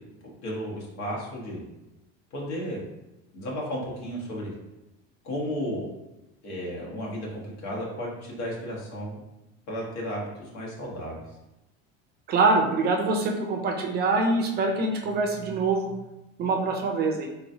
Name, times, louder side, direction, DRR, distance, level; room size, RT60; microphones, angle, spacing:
voice 1, 0.4-1.6 2.3-2.8 3.3-4.5 5.2-5.9 6.4-9.2 9.7-11.2, equal, 75° left, -4 dB, 1.5 m, -33 dB
voice 2, 12.3-15.9 16.4-17.3, right 3 dB, 35° right, 3 dB, 0.5 m, -24 dB
4.0 x 3.0 x 2.7 m, 0.95 s
cardioid pair, 140°, 29 cm